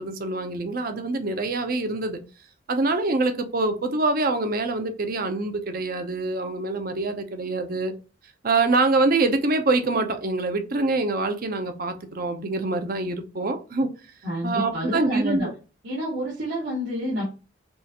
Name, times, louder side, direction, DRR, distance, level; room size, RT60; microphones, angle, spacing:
voice 1, 0.0-2.2 2.7-7.9 8.4-13.9 14.4-15.5, right 3 dB, 50° right, 0.7 m, -25 dB
voice 2, 14.2-15.5 15.8-17.2, equal, 75° right, 1.8 m, -28 dB
5.4 x 2.4 x 2.9 m
head